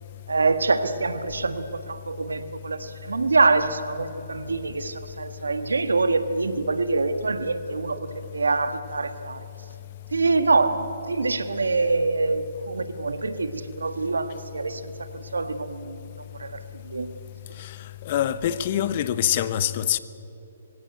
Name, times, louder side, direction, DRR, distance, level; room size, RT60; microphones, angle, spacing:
voice 1, 0.3-9.4 10.1-16.1 16.4-17.1, right 3 dB, 90° right, 1.6 m, -25 dB
voice 2, 18.1-20.0, left 11 dB, 45° left, 0.9 m, -24 dB
24.0 x 16.5 x 9.1 m
hypercardioid pair, 140°, 0 cm